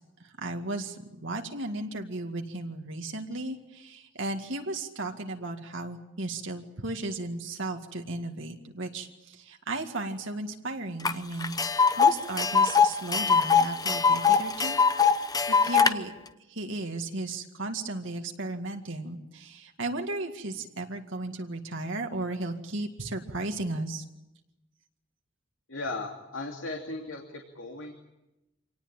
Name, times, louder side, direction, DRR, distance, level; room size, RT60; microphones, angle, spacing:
voice 1, 0.2-14.8 15.5-16.1 16.5-24.0, right 2 dB, 65° right, 3 dB, 2.1 m, -35 dB
Tick, 11.0-11.1 11.4-15.9, left 5 dB, 20° left, 0.9 m, -22 dB
voice 2, 25.7-27.9, left 2 dB, 70° left, 2 dB, 2.8 m, -37 dB
26.0 x 19.0 x 9.0 m, 0.94 s
head